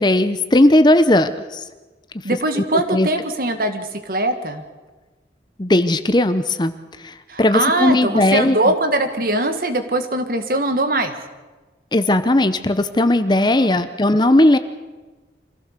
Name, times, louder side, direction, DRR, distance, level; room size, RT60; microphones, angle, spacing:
voice 1, 0.0-1.6 2.6-2.7 2.9-3.1 5.6-6.7 7.0-8.6 11.9-14.6, left 1 dB, 25° left, 11 dB, 0.8 m, -16 dB
voice 2, 2.2-4.6 7.3-11.1 13.4-13.8, right 2 dB, 55° right, 7 dB, 1.8 m, -21 dB
25.0 x 15.5 x 6.7 m, 1.2 s
head